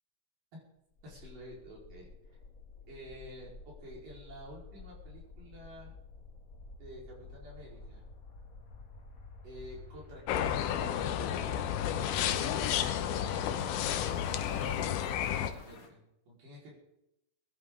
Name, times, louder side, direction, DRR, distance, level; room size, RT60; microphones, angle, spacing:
sound 1, 0.9-15.9, left 3 dB, 55° left, 0.9 m, -51 dB
voice 1, 1.0-2.1 2.9-5.9 6.8-8.1 9.4-11.6 12.1-12.9 13.6-14.1 14.4-16.7, equal, 65° right, -3 dB, 5.9 m, -50 dB
sound 2, 10.3-15.5, left 10 dB, 85° left, 2.7 m, -31 dB
22.5 x 11.0 x 3.7 m, 0.86 s
omnidirectional pair, 4.1 m